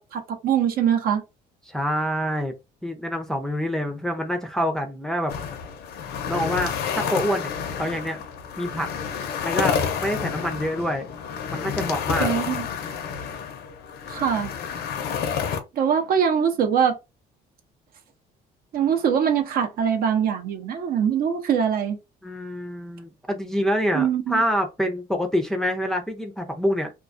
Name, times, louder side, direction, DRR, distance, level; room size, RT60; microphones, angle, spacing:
voice 1, 0.1-1.2 12.2-12.6 14.1-14.5 15.7-16.9 18.7-22.0 23.9-24.4, right 8 dB, 60° right, 0.7 m, -22 dB
voice 2, 1.7-2.5 2.8-5.3 6.3-7.5 7.8-8.2 8.6-8.9 9.4-11.2 11.5-12.3 22.2-26.9, equal, 5° left, 0.5 m, -26 dB
sound 1, 5.3-15.6, left 7 dB, 70° left, 0.6 m, -29 dB
2.3 x 2.3 x 2.5 m
cardioid pair, 110°, 17 cm